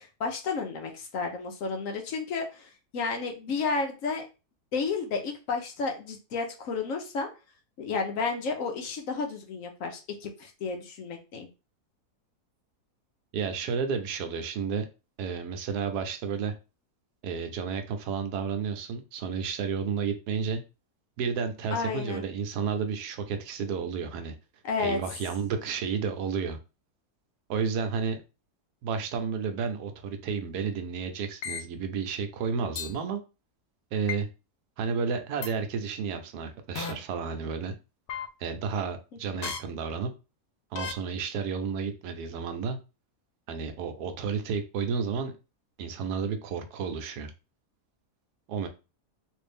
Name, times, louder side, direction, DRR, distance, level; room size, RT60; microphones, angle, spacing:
voice 1, 0.0-4.3 4.7-7.3 7.8-11.5 21.7-22.2 24.6-25.0 39.3-39.4, left 4 dB, 65° left, 3 dB, 1.0 m, -32 dB
voice 2, 13.3-14.9 15.2-16.5 17.2-20.6 21.2-24.3 24.8-26.6 27.5-28.2 28.8-33.2 33.9-34.3 34.8-37.7 38.4-40.1 40.7-42.8 43.5-45.3 45.8-47.3 48.5-48.7, right 6 dB, 85° right, 7 dB, 1.2 m, -31 dB
sound 1, 31.4-31.6 32.8-32.9 34.1-34.2 35.4-35.5 36.8-36.9 38.1-38.3 39.4-39.6 40.8-40.9, left 7 dB, 85° left, 0.5 m, -33 dB
3.2 x 2.6 x 3.3 m, 0.30 s
omnidirectional pair, 1.7 m